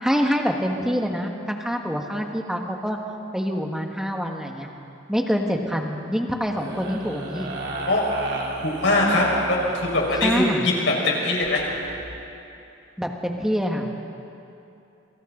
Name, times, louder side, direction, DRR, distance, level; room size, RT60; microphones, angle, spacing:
voice 1, 0.0-3.0 3.3-4.7 5.1-7.5 10.2-10.6 13.0-14.0, equal, 5° right, 2 dB, 1.6 m, -25 dB
sound 1, 6.5-10.5 11.3-12.0, right 2 dB, 60° right, 3.4 m, -33 dB
voice 2, 8.6-11.6, left 2 dB, 65° left, -2 dB, 5.2 m, -22 dB
28.0 x 24.5 x 3.9 m, 2.8 s
head